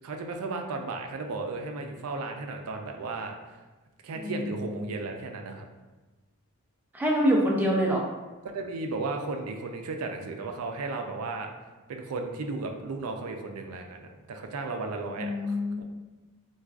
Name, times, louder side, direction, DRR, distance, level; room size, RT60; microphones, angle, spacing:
voice 1, 0.0-3.3 4.0-5.7 8.5-11.5 11.9-15.8, right 3 dB, 70° right, 3 dB, 0.4 m, -35 dB
voice 2, 6.9-8.0 15.2-15.8, equal, 10° right, -3 dB, 0.4 m, -25 dB
4.5 x 2.3 x 2.4 m, 1.2 s
head